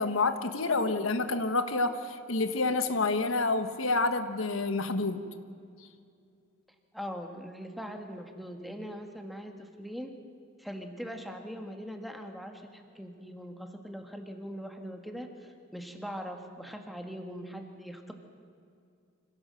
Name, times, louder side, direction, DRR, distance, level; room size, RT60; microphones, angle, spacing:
voice 1, 0.0-5.2, left 3 dB, 80° left, 9 dB, 1.3 m, -28 dB
voice 2, 6.9-10.2 10.6-18.1, equal, ahead, 4 dB, 1.7 m, -41 dB
25.5 x 17.5 x 7.7 m, 2.3 s
head